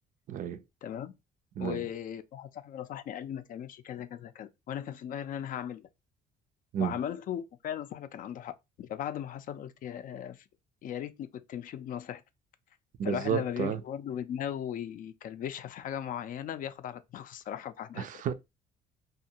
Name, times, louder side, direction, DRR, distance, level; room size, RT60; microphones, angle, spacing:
voice 1, 0.3-0.6 1.6-1.8 6.7-7.0 13.0-13.8 18.0-18.3, right 8 dB, 50° right, 0.4 m, -31 dB
voice 2, 0.8-1.1 1.6-5.9 6.8-10.4 10.8-12.2 13.0-18.1, left 10 dB, 55° left, 0.4 m, -38 dB
2.5 x 2.3 x 2.8 m
cardioid pair, 110°, 17 cm